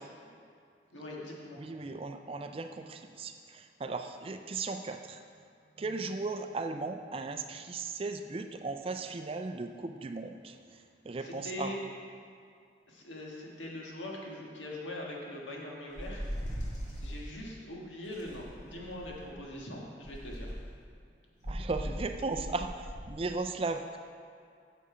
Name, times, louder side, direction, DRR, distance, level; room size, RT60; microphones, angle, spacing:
voice 1, 0.9-1.6 11.2-11.8 12.9-16.6 17.0-20.5, left 1 dB, 85° left, -2 dB, 1.6 m, -42 dB
voice 2, 1.6-5.2 5.8-11.7 21.4-24.0, right 3 dB, 30° right, 7 dB, 0.4 m, -37 dB
sound 1, 16.0-17.2 18.1-19.4 20.0-20.7 21.4-23.1, equal, 40° left, 2.0 m, -39 dB
8.2 x 6.8 x 4.9 m, 2.3 s
head